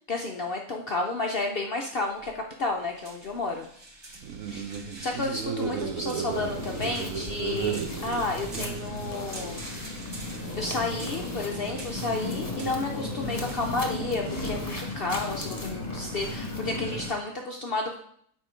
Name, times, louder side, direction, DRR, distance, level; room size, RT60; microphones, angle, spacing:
voice 1, 0.0-3.7 4.5-4.7 5.0-9.6 10.5-18.0, left 2 dB, 70° left, 2 dB, 0.5 m, -31 dB
sound 1, 2.1-16.8, right 1 dB, 25° right, 0.7 m, -47 dB
sound 2, 4.1-9.2, right 7 dB, 65° right, 1.0 m, -34 dB
sound 3, 6.3-17.1, left 2 dB, 25° left, 1.1 m, -35 dB
7.7 x 4.3 x 4.9 m, 0.66 s
omnidirectional pair, 1.7 m